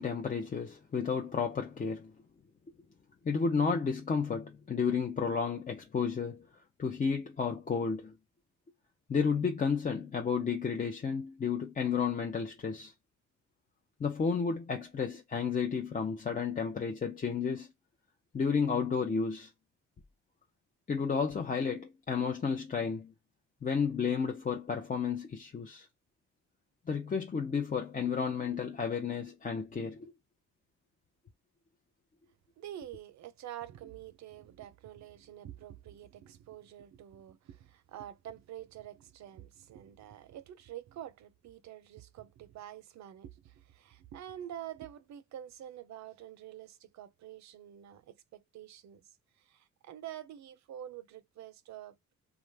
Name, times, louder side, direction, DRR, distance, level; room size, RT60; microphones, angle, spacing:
voice 1, 0.0-2.1 3.2-6.5 6.8-8.1 9.1-12.9 14.0-17.7 18.3-19.5 20.9-23.1 23.6-25.9 26.9-30.1, left 5 dB, 25° left, 0.6 m, -32 dB
voice 2, 32.6-49.0 49.4-52.1, right 11 dB, 65° right, 0.6 m, -47 dB
2.5 x 2.4 x 3.3 m
cardioid pair, 90°, 30 cm